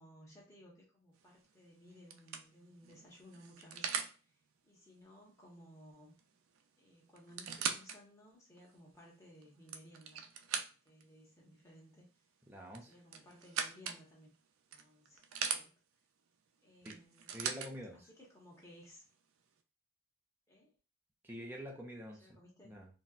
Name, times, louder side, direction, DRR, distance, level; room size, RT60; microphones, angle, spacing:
voice 1, 0.0-4.4 4.6-6.1 6.8-10.6 10.8-12.1 12.7-14.3 14.7-15.8 16.6-17.6 17.9-19.1 20.5-20.8 22.1-22.8, equal, 15° left, -3 dB, 0.9 m, -59 dB
sound 1, 1.2-1.5 2.1-4.2 6.2-6.3 6.6-6.7 7.2-8.0 8.6-8.7 9.4-11.0 12.7-14.0 14.7-15.6 16.9-17.7 18.6-18.7, right 7 dB, 90° right, 0.4 m, -40 dB
voice 2, 12.5-12.9 16.8-17.0 17.3-18.1 21.2-22.4 22.6-22.9, equal, 10° right, -1 dB, 0.5 m, -47 dB
4.1 x 2.0 x 2.3 m, 0.34 s
head